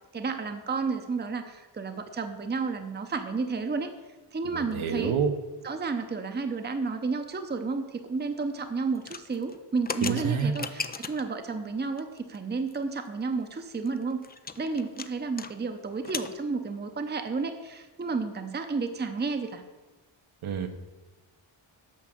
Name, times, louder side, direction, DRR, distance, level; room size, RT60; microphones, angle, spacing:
voice 1, 0.1-3.9 4.3-5.1 5.6-14.2 14.6-19.6, right 4 dB, 20° right, 7 dB, 0.7 m, -31 dB
voice 2, 4.5-5.3 10.0-10.5 20.4-20.7, right 6 dB, 75° right, 6 dB, 1.2 m, -27 dB
sound 1, 9.0-11.4 12.0-12.4 12.7-12.8 13.1-13.2 13.5-15.5 15.8-16.3, left 5 dB, 20° left, 0.3 m, -37 dB
9.2 x 6.2 x 7.7 m, 1.2 s
wide cardioid pair, 150°, 49 cm